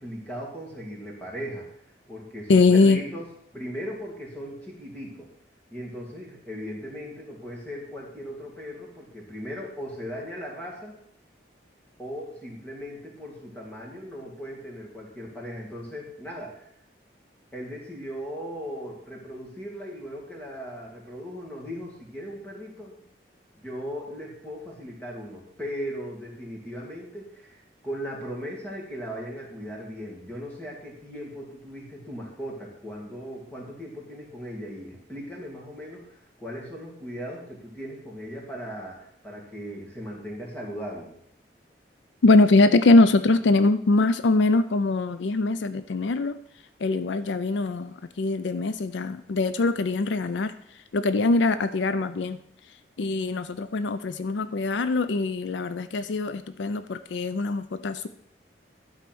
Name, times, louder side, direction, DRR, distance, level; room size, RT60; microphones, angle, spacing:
voice 1, 0.0-1.7 2.1-3.3 3.5-5.3 5.7-11.0 12.0-16.7 17.5-23.0 23.5-41.1, equal, 10° left, -3 dB, 2.3 m, -38 dB
voice 2, 2.5-3.0 42.2-46.3 46.8-50.5 50.9-52.4 53.0-58.1, left 3 dB, 80° left, 12 dB, 0.4 m, -22 dB
11.5 x 4.5 x 6.1 m, 0.69 s
head